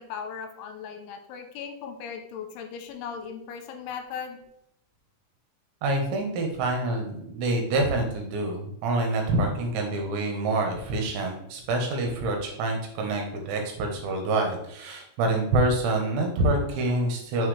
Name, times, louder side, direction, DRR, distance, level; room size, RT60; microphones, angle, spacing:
voice 1, 0.0-4.4, left 7 dB, 85° left, 5 dB, 3.1 m, -38 dB
voice 2, 5.8-17.5, right 2 dB, 75° right, 2 dB, 3.2 m, -26 dB
6.8 x 5.6 x 3.2 m, 0.75 s
omnidirectional pair, 5.6 m